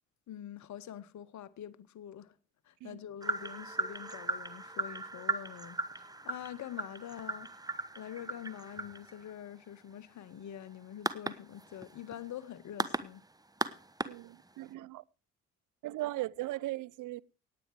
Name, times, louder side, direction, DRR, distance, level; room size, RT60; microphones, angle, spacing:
voice 1, 0.3-2.3 2.6-13.2, left 10 dB, 45° left, 1.1 m, -45 dB
sound 1, 3.2-14.7, right 2 dB, 10° right, 1.1 m, -38 dB
voice 2, 14.0-15.0 15.8-17.2, right 17 dB, 55° right, 0.6 m, -38 dB
18.0 x 8.8 x 4.7 m
figure-of-eight pair, 45°, 38 cm